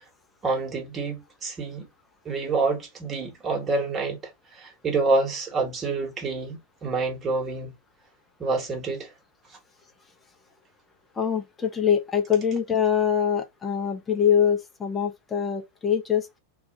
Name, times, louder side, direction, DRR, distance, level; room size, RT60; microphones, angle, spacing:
voice 1, 0.4-1.9 2.2-4.2 4.6-7.7 8.4-9.1, right 3 dB, 20° right, 1.2 m, -27 dB
voice 2, 11.2-16.3, left 8 dB, 15° left, 0.6 m, -24 dB
2.4 x 2.3 x 3.9 m
figure-of-eight pair, 90°, 0 cm